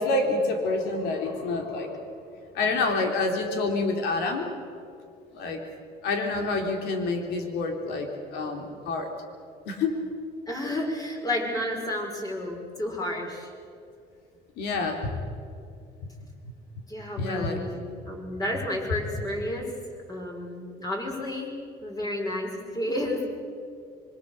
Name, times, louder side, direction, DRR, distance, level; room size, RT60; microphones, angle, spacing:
voice 1, 0.0-2.0 2.5-4.5 5.3-5.6 6.0-9.1 9.7-10.0 14.6-15.3 16.2-16.3 17.2-17.6, left 3 dB, 90° left, 4 dB, 3.6 m, -28 dB
voice 2, 10.5-13.5 16.9-19.7 20.1-21.5 21.8-23.3, left 1 dB, 20° left, 0 dB, 6.1 m, -31 dB
26.0 x 23.5 x 6.9 m, 2.4 s
cardioid pair, 110°, 17 cm